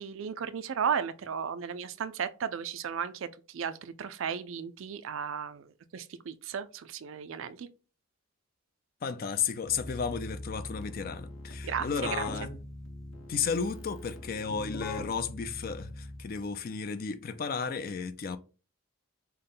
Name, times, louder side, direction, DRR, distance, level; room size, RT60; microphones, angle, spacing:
voice 1, 0.0-3.3 3.5-5.7 5.9-7.7 11.6-11.9 12.2-12.3, right 7 dB, 65° right, 0.4 m, -34 dB
voice 2, 9.0-12.5 13.3-18.4, left 6 dB, 45° left, 0.4 m, -33 dB
Keyboard (musical), 9.6-16.5, left 2 dB, 70° left, 0.9 m, -41 dB
5.5 x 2.1 x 3.8 m
head